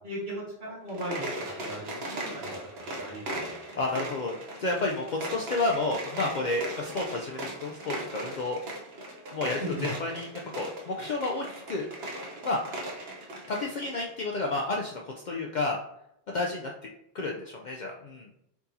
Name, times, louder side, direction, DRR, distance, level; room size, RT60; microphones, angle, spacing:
voice 1, 0.0-3.9 9.6-9.9, equal, 50° right, -6 dB, 1.7 m, -38 dB
sound 1, 0.8-14.1, right 1 dB, 70° right, 1.1 m, -38 dB
voice 2, 3.8-8.6 9.3-10.3 10.5-11.9 12.4-12.6 13.5-15.8 16.3-16.7 17.1-18.3, left 2 dB, 55° left, 0 dB, 0.6 m, -31 dB
4.6 x 4.1 x 2.6 m, 0.77 s
omnidirectional pair, 1.1 m